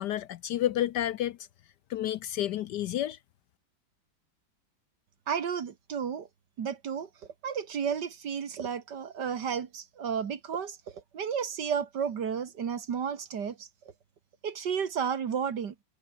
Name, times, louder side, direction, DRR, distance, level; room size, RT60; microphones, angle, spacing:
voice 1, 0.0-1.4 1.9-3.2, left 12 dB, 70° left, 1.1 m, -30 dB
voice 2, 5.3-6.3 6.6-7.1 7.4-10.8 11.1-13.7 14.4-15.7, right 7 dB, 60° right, 2.1 m, -32 dB
omnidirectional pair, 2.1 m